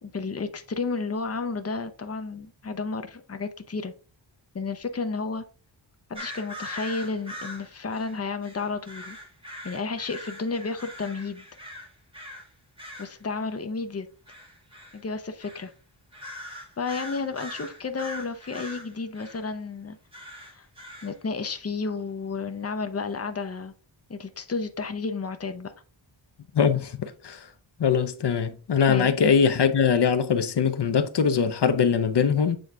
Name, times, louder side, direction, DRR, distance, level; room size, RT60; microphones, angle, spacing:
voice 1, 0.0-3.9 4.5-5.4 6.1-9.2 9.6-11.4 13.0-14.1 14.9-15.7 16.8-20.0 20.3-20.7 21.0-23.7 24.1-25.7 28.9-29.2, left 4 dB, 30° left, 0.8 m, -32 dB
sound 1, 6.1-12.5 12.8-13.2 14.3-15.0 15.4-15.7 16.1-19.4 20.1-21.1, left 1 dB, 10° right, 2.1 m, -41 dB
voice 2, 26.5-27.4 27.8-32.6, left 6 dB, 60° left, 0.8 m, -22 dB
7.8 x 3.9 x 3.5 m
wide cardioid pair, 95°, 46 cm